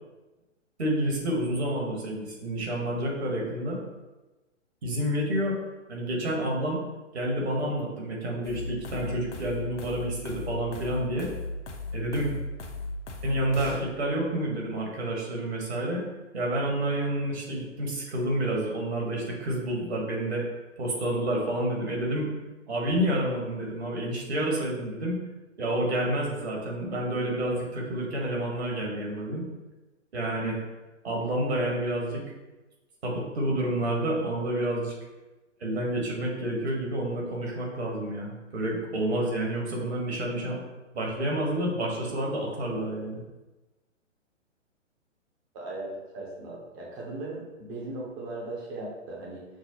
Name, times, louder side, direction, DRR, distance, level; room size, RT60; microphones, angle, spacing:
voice 1, 0.8-3.8 4.8-5.6 5.9-6.8 7.1-11.3 11.9-12.4 13.2-16.0 16.3-20.5 20.8-22.3 22.7-25.2 25.6-29.4 30.1-30.6 31.0-32.3 33.0-34.9 35.6-40.6 40.9-43.2, right 1 dB, 55° right, -1 dB, 1.3 m, -29 dB
sound 1, 8.4-13.8, left 2 dB, 65° left, 0.7 m, -36 dB
voice 2, 45.5-49.4, right 2 dB, 20° right, -3 dB, 0.6 m, -38 dB
6.0 x 2.0 x 2.8 m, 1.1 s
figure-of-eight pair, 125°, 38 cm